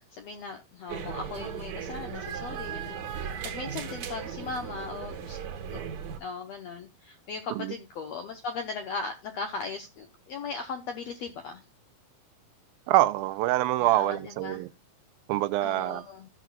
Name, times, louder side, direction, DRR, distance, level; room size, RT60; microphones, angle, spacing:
voice 1, 0.0-5.4 5.7-5.8 6.2-11.6 13.8-14.6 15.6-16.3, left 4 dB, 75° left, 1.5 m, -38 dB
sound 1, 0.9-6.2, right 7 dB, 60° right, 2.4 m, -37 dB
voice 2, 12.9-14.7 15.3-16.0, right 16 dB, 80° right, 2.3 m, -25 dB
15.0 x 6.2 x 2.3 m
omnidirectional pair, 4.2 m